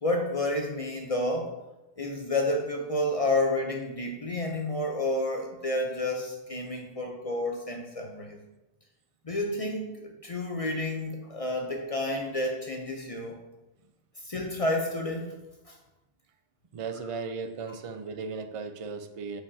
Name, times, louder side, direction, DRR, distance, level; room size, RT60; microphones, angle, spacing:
voice 1, 0.0-1.5 2.0-8.4 9.2-13.4 14.2-15.4 15.7-15.8, left 1 dB, 40° left, 1 dB, 0.6 m, -30 dB
voice 2, 16.7-19.4, right 4 dB, 45° right, 8 dB, 0.4 m, -36 dB
6.8 x 5.6 x 2.7 m, 1.0 s
omnidirectional pair, 1.1 m